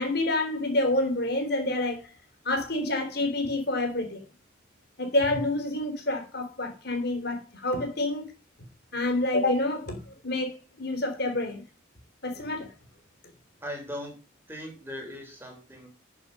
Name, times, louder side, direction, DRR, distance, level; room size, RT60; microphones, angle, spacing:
voice 1, 0.0-2.1 2.5-4.2 5.0-8.3 8.9-11.6 12.2-12.7, left 2 dB, 50° left, 3.8 m, -28 dB
voice 2, 13.6-14.2 14.5-15.9, equal, 10° right, 3.8 m, -39 dB
14.0 x 7.3 x 5.5 m
head